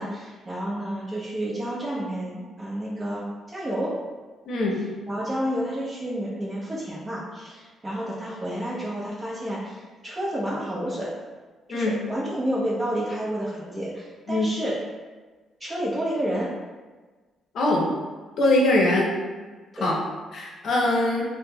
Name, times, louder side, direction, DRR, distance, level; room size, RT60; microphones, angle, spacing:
voice 1, 0.0-4.0 5.1-11.1 11.7-14.8 15.6-16.5 19.7-19.9, equal, 25° right, -7 dB, 0.8 m, -30 dB
voice 2, 4.5-4.8 11.7-11.9 14.3-14.5 17.5-17.9 18.4-19.1 19.8-20.0 20.3-21.2, left 1 dB, 65° left, -2 dB, 0.7 m, -22 dB
4.7 x 2.1 x 2.2 m, 1.3 s
cardioid pair, 90°, 0 cm